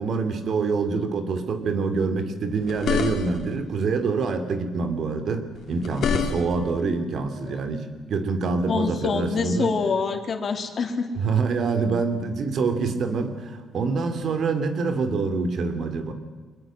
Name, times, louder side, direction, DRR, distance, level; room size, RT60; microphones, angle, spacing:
voice 1, 0.0-9.7 11.1-16.1, right 4 dB, 60° right, 8 dB, 2.8 m, -26 dB
sound 1, 2.6-3.6 5.6-6.7, left 6 dB, 65° left, 3.1 m, -27 dB
voice 2, 8.7-11.1, left 5 dB, 50° left, 5 dB, 3.1 m, -26 dB
24.0 x 20.5 x 7.7 m, 1.5 s
cardioid pair, 90°, 0 cm